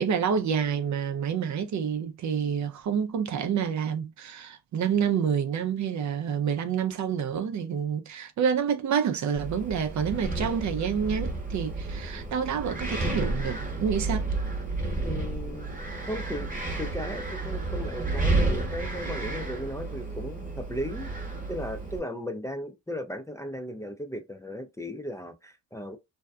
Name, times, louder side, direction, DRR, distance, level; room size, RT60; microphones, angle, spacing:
voice 1, 0.0-14.3, right 7 dB, 55° right, 0.5 m, -28 dB
Wind, 9.4-22.0, right 2 dB, 25° right, 1.0 m, -31 dB
voice 2, 15.0-15.7 16.1-21.1 21.5-26.0, equal, 10° left, 0.4 m, -36 dB
2.7 x 2.2 x 2.2 m
cardioid pair, 85°, 33 cm